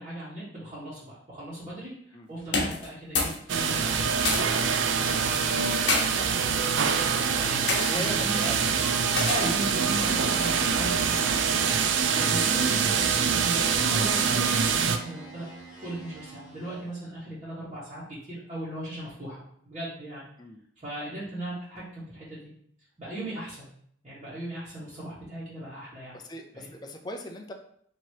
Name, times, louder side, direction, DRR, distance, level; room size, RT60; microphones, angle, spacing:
voice 1, 0.0-6.9 7.3-8.6 9.1-15.5 15.8-20.2 20.8-22.5 23.0-23.7 24.0-26.2 26.5-26.7, right 1 dB, 35° right, -11 dB, 1.3 m, -38 dB
sound 1, 2.4-3.4 3.7-4.6 5.5-6.0 6.8-7.1 7.7-7.9 9.2-9.6, left 3 dB, 75° left, 0.9 m, -28 dB
sound 2, 3.5-15.0, right 6 dB, 90° right, 0.4 m, -25 dB
sound 3, 6.1-17.0, right 1 dB, 5° right, 1.3 m, -44 dB
voice 2, 7.6-8.6 20.4-20.6 26.1-27.5, left 1 dB, 20° left, 3 dB, 0.4 m, -38 dB
3.0 x 2.9 x 4.5 m, 0.65 s
head